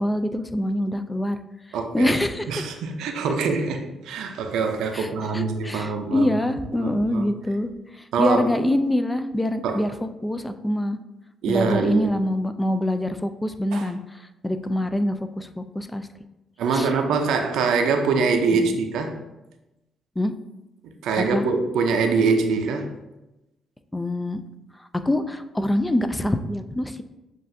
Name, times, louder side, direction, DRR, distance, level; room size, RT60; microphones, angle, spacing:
voice 1, 0.0-1.4 1.7-2.7 4.9-11.0 11.5-16.1 16.7-16.9 18.5-18.8 20.2-20.3 21.2-21.4 23.9-24.4 25.1-27.0, left 1 dB, 10° left, 9 dB, 0.3 m, -25 dB
voice 2, 1.7-6.3 6.8-7.3 8.1-8.5 9.6-9.8 11.4-12.1 13.7-13.9 16.6-19.2 21.0-22.9, right 4 dB, 85° right, 5 dB, 0.5 m, -24 dB
7.5 x 2.5 x 2.6 m, 0.97 s
cardioid pair, 90°, 0 cm